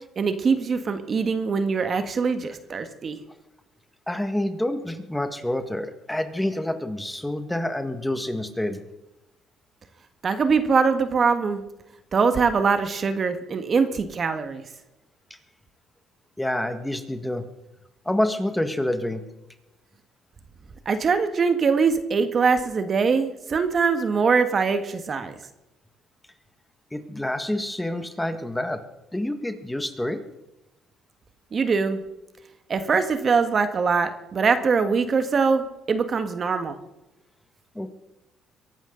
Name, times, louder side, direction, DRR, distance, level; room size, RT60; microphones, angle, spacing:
voice 1, 0.1-3.2 10.2-11.6 12.1-14.6 20.8-25.3 31.5-32.0 32.7-36.7, right 5 dB, 40° right, 9 dB, 1.7 m, -22 dB
voice 2, 4.1-8.8 16.4-17.4 18.0-19.2 26.9-28.8 29.1-30.2 37.7-37.9, left 1 dB, 5° left, 8 dB, 1.7 m, -27 dB
23.5 x 11.5 x 4.0 m, 0.96 s
cardioid pair, 90°, 0 cm